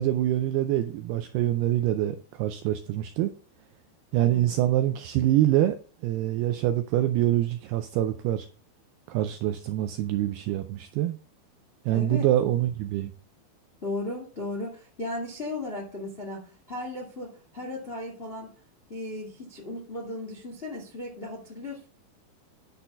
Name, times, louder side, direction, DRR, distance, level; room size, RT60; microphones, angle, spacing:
voice 1, 0.0-3.3 4.1-5.8 6.0-8.5 9.1-11.2 11.9-13.1, right 13 dB, 85° right, 2.3 m, -25 dB
voice 2, 11.9-12.2 13.8-18.5 18.9-21.9, left 2 dB, 45° left, 0.7 m, -36 dB
10.5 x 4.3 x 5.5 m
omnidirectional pair, 5.2 m